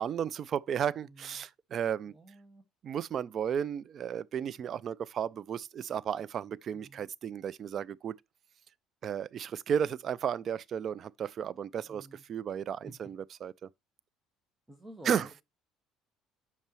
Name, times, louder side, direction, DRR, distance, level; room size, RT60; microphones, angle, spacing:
voice 1, 0.0-2.1 2.8-8.2 9.0-13.5 15.1-15.3, right 8 dB, 50° right, 0.4 m, -34 dB
voice 2, 1.0-1.5 2.1-2.6 6.7-7.1 11.9-12.2 12.8-12.9 14.7-15.4, right 1 dB, 15° right, 1.6 m, -50 dB
8.3 x 6.8 x 3.0 m
supercardioid pair, 90°, 0 cm